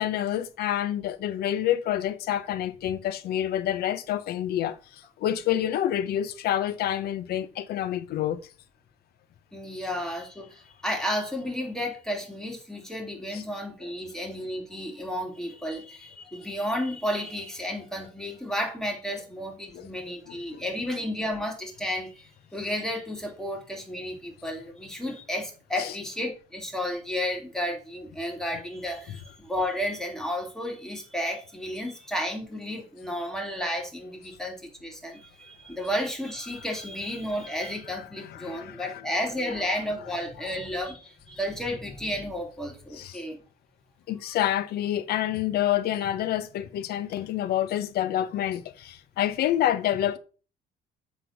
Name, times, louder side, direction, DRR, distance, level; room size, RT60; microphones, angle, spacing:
voice 1, 0.0-8.4 13.3-13.4 19.7-19.9 20.3-20.6 25.8-25.9 38.2-39.0 40.4-40.5 42.9-43.2 44.1-50.2, left 11 dB, 70° left, 0.9 m, -28 dB
voice 2, 9.5-43.4, equal, 5° left, 2.6 m, -32 dB
7.9 x 3.7 x 5.9 m
cardioid pair, 110°, 17 cm